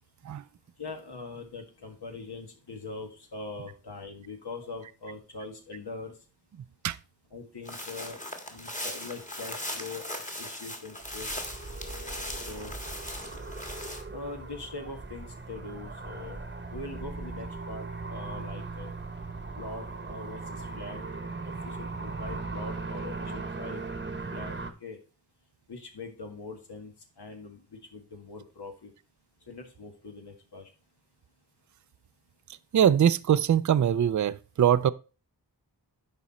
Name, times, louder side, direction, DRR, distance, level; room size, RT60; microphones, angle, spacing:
voice 1, 0.8-6.1 7.3-8.2 8.5-10.1 10.4-11.3 12.5-12.7 14.1-16.4 16.7-18.9 19.6-21.0 21.4-23.8 24.3-25.0 25.7-27.6 27.9-28.9 29.5-30.7, left 3 dB, 70° left, 1.7 m, -42 dB
sound 1, 7.6-14.0, left 1 dB, 20° left, 1.5 m, -39 dB
sound 2, 11.0-24.7, right 3 dB, 25° right, 1.0 m, -38 dB
voice 2, 32.7-34.9, right 9 dB, 45° right, 0.4 m, -22 dB
10.5 x 4.2 x 4.2 m
wide cardioid pair, 65°, 41 cm